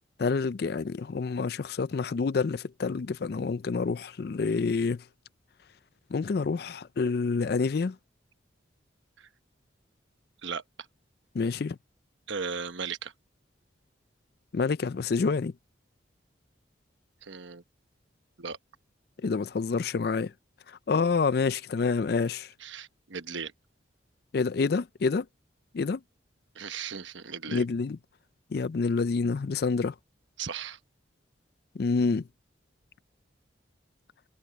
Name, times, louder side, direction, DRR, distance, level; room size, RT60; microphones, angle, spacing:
voice 1, 0.2-5.0 6.1-8.0 11.3-11.8 14.5-15.5 19.2-20.3 20.7-22.5 24.3-25.3 25.7-26.0 27.5-28.0 28.5-29.9 31.7-32.3, left 4 dB, 55° left, 0.4 m, -28 dB
voice 2, 12.3-13.1 17.2-17.6 18.4-18.6 22.6-23.5 26.5-27.7 30.4-30.8, right 6 dB, 75° right, 1.1 m, -36 dB
head